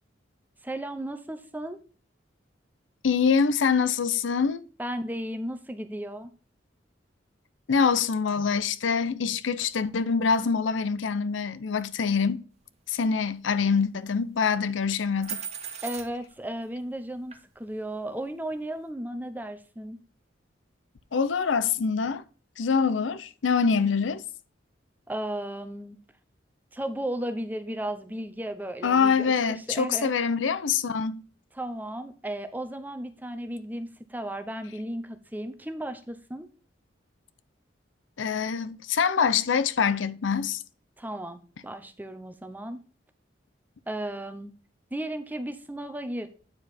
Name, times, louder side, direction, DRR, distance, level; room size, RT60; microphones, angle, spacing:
voice 1, 0.6-1.8 4.8-6.3 15.8-20.0 25.1-26.0 26.7-30.1 31.5-36.5 41.0-42.8 43.9-44.5 44.9-46.3, right 1 dB, 10° right, 0.7 m, -35 dB
voice 2, 3.0-4.6 7.7-12.4 12.9-15.4 21.1-22.2 22.6-24.2 28.8-31.2 38.2-40.6, left 5 dB, 80° left, 0.5 m, -25 dB
sound 1, 15.2-16.3 17.3-17.4, right 8 dB, 35° right, 1.3 m, -36 dB
8.8 x 4.8 x 4.2 m
head